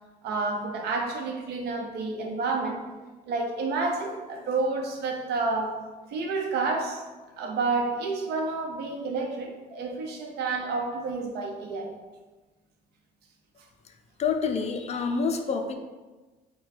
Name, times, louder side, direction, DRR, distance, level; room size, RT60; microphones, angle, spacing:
voice 1, 0.2-2.8 3.3-5.8 6.1-7.0 7.4-11.9 14.9-15.1, right 3 dB, 75° right, 2 dB, 0.8 m, -29 dB
voice 2, 14.2-15.7, left 5 dB, 40° left, 6 dB, 0.4 m, -27 dB
4.3 x 2.2 x 4.2 m, 1.2 s
cardioid pair, 110°, 17 cm